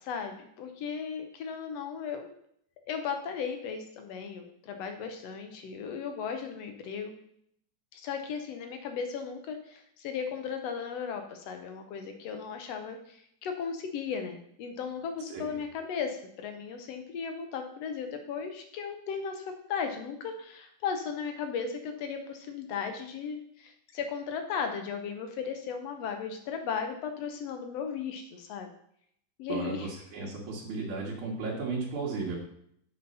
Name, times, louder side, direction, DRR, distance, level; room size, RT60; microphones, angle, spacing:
voice 1, 0.0-2.3 2.9-7.1 7.9-19.4 19.7-28.7 29.4-29.9, left 6 dB, 65° left, 5 dB, 1.9 m, -36 dB
voice 2, 29.5-32.4, right 4 dB, 75° right, -6 dB, 2.9 m, -34 dB
8.3 x 5.2 x 5.5 m, 0.69 s
omnidirectional pair, 3.4 m